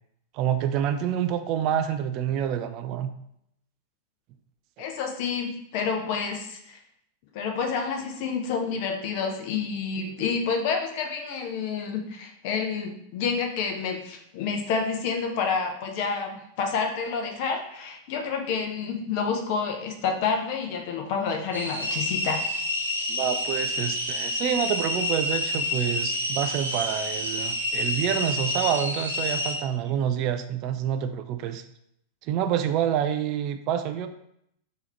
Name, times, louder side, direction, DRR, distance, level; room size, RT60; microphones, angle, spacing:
voice 1, 0.3-3.1 23.1-31.6 32.2-34.1, right 9 dB, 40° right, 8 dB, 0.3 m, -27 dB
voice 2, 4.8-6.8 7.3-22.4, left 5 dB, 45° left, 3 dB, 0.8 m, -29 dB
sound 1, 21.5-29.5, left 1 dB, 90° right, 1.0 m, -28 dB
3.9 x 2.8 x 4.3 m, 0.76 s
figure-of-eight pair, 90°, 0 cm